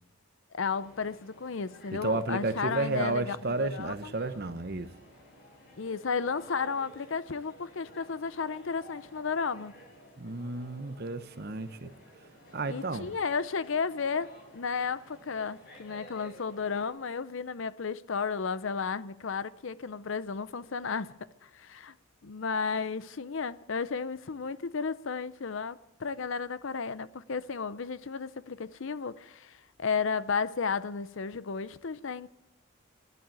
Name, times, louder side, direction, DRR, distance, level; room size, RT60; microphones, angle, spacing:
voice 1, 0.5-4.1 5.8-9.7 12.7-21.1 21.4-21.9 22.2-32.3, left 5 dB, 65° left, 0.6 m, -33 dB
sound 1, 0.7-16.9, equal, 45° left, 6.6 m, -53 dB
voice 2, 1.9-4.9 10.2-11.9 12.5-13.1, right 2 dB, 50° right, 0.9 m, -32 dB
12.5 x 11.5 x 9.1 m
head